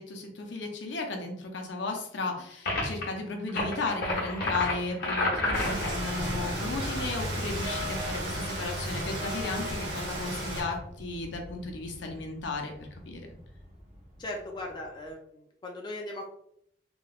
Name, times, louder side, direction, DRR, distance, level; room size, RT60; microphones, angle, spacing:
voice 1, 0.0-13.3, left 3 dB, 70° left, 3 dB, 0.6 m, -35 dB
sound 1, 2.7-3.0 3.5-6.0, left 2 dB, 55° left, 0.9 m, -29 dB
Rain, 5.5-10.6, right 1 dB, 60° right, 1.1 m, -34 dB
sound 2, 6.6-15.0, left 1 dB, 35° right, 0.7 m, -41 dB
voice 2, 14.2-16.3, left 1 dB, 25° left, 0 dB, 0.3 m, -38 dB
3.3 x 3.0 x 2.3 m, 0.71 s
head